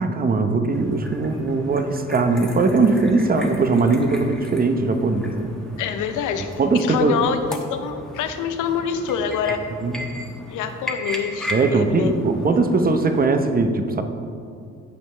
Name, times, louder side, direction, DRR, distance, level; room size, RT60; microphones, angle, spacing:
voice 1, 0.0-5.5 6.6-7.2 9.8-10.1 11.5-14.0, right 3 dB, 30° right, 7 dB, 0.7 m, -20 dB
sound 1, 0.7-13.3, left 1 dB, ahead, 1.0 m, -36 dB
voice 2, 5.8-9.6 10.5-12.1, left 7 dB, 85° left, 8 dB, 0.7 m, -26 dB
14.5 x 5.2 x 3.3 m, 2.3 s
cardioid pair, 90°, 30 cm